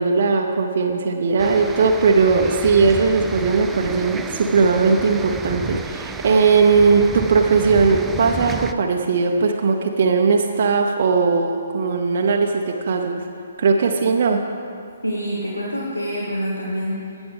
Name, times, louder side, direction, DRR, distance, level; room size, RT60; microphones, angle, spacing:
voice 1, 0.0-13.3 13.6-14.4, right 4 dB, 50° right, 3 dB, 0.6 m, -18 dB
sound 1, 1.4-8.7, right 4 dB, 10° right, 0.3 m, -32 dB
voice 2, 15.0-17.2, equal, 90° left, -4 dB, 1.3 m, -26 dB
17.0 x 7.1 x 3.5 m, 2.5 s
figure-of-eight pair, 130°, 0 cm